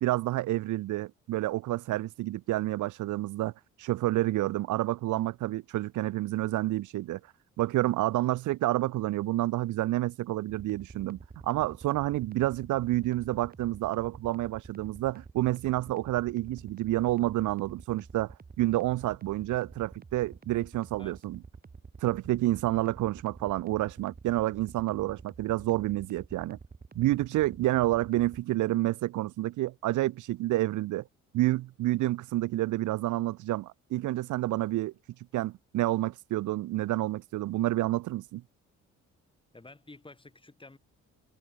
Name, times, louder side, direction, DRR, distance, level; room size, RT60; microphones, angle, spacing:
voice 1, 0.0-3.5 3.8-7.2 7.6-21.4 22.0-26.6 26.9-31.0 31.3-34.9 35.3-38.4, right 16 dB, 80° right, 0.8 m, -29 dB
sound 1, 10.5-28.4, right 4 dB, 30° right, 4.0 m, -48 dB
voice 2, 39.5-40.8, left 2 dB, 15° left, 5.5 m, -50 dB
cardioid pair, 90°, 30 cm